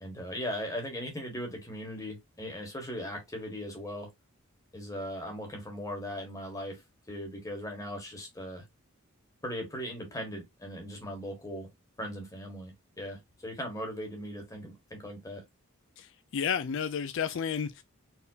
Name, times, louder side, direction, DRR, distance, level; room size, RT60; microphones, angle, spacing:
voice 1, 0.0-4.1 4.7-6.8 7.1-8.6 9.4-11.7 12.0-15.4, equal, 15° left, 1.5 m, -38 dB
voice 2, 16.0-17.8, left 7 dB, 60° left, 0.4 m, -32 dB
4.4 x 3.5 x 2.7 m
head